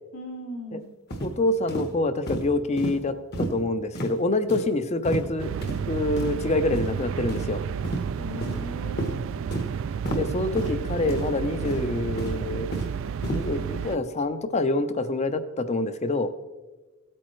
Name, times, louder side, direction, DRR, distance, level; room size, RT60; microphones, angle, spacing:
voice 1, 0.1-0.9 8.2-9.3, left 1 dB, 85° left, -3 dB, 3.1 m, -38 dB
sound 1, 1.1-1.3 1.7-1.9 2.3-2.4 2.8-2.9 3.3-3.5 3.9-4.1 4.5-4.7 5.0-5.3 5.6-5.8 6.2-6.3 6.7-6.9 7.3-7.4 7.8-8.0 8.4-8.6 9.0-9.1 9.5-9.7 10.0-10.2 10.6-10.7 11.1-11.3 11.6-11.9 12.2-12.9 13.2-13.4, right 1 dB, 45° left, 1.1 m, -31 dB
voice 2, 1.2-5.5 5.9-7.6 10.1-12.7 13.3-16.3, left 2 dB, 30° left, 11 dB, 0.6 m, -26 dB
sound 2, 5.4-14.0, right 7 dB, 60° right, 0.3 m, -31 dB
17.0 x 8.7 x 3.1 m, 1.2 s
head